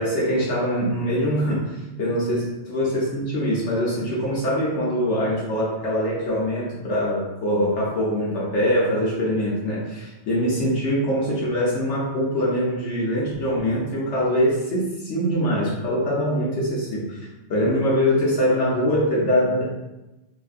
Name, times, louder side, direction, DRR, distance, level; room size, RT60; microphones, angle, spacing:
voice 1, 0.0-17.2 17.5-19.6, equal, 75° left, -6 dB, 1.1 m, -23 dB
3.8 x 2.5 x 2.4 m, 1.0 s
omnidirectional pair, 1.2 m